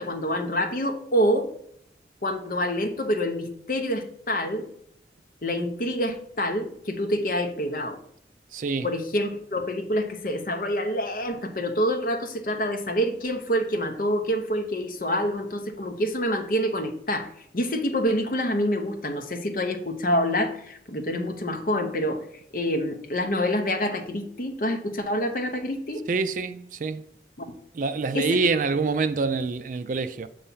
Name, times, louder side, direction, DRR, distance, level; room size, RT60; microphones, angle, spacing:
voice 1, 0.0-1.5 2.2-4.7 5.4-8.0 8.8-22.2 22.5-26.0 27.4-27.5 28.1-28.3, equal, 50° left, 0.8 m, -27 dB
voice 2, 8.5-8.9 26.1-27.0 27.7-30.3, right 4 dB, 45° right, 0.4 m, -26 dB
6.9 x 3.2 x 5.5 m
head